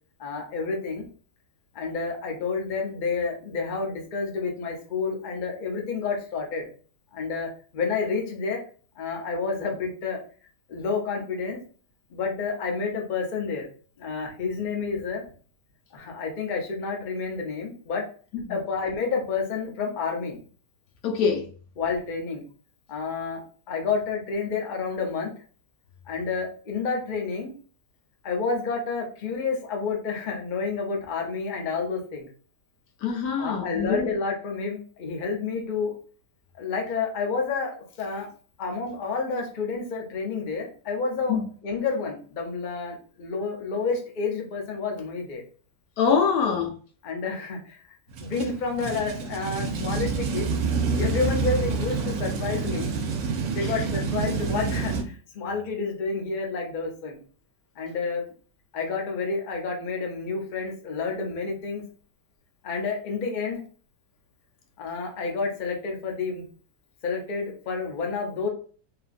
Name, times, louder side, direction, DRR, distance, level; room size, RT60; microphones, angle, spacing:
voice 1, 0.2-1.0 1.7-6.7 7.1-8.6 9.0-10.2 10.7-11.6 12.1-13.7 14.0-15.2 15.9-18.0 18.5-20.4 21.8-22.4 22.9-23.4 23.7-25.3 26.1-27.5 28.2-32.3 33.4-35.9 36.6-38.3 38.6-45.4 47.0-47.8 48.2-50.5 51.0-52.9 53.5-57.2 57.8-58.2 58.7-61.8 62.6-63.6 64.8-66.4 67.0-68.5, left 4 dB, 55° left, 0.5 m, -29 dB
voice 2, 21.0-21.4 33.0-34.1 41.3-41.4 46.0-46.7, left 6 dB, 70° left, 1.1 m, -24 dB
sound 1, 48.1-55.0, right 5 dB, 65° right, 0.9 m, -28 dB
2.8 x 2.5 x 2.4 m
omnidirectional pair, 1.7 m